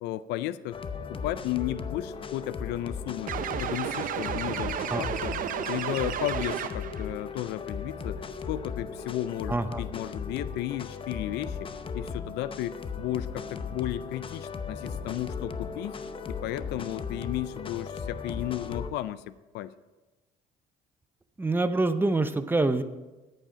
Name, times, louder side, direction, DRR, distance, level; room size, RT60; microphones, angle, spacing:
voice 1, 0.0-0.8 1.1-3.3 3.6-5.3 5.7-11.7 11.9-15.9 16.3-19.2 19.5-19.7, left 14 dB, 80° left, 16 dB, 0.4 m, -34 dB
sound 1, 0.7-18.9, left 5 dB, 30° left, 0.7 m, -37 dB
sound 2, 3.3-7.1, right 9 dB, 55° right, 0.6 m, -32 dB
voice 2, 9.5-9.8 21.4-22.8, right 2 dB, 10° right, 11 dB, 0.6 m, -25 dB
10.0 x 9.0 x 5.0 m, 1.1 s
cardioid pair, 110°, 17 cm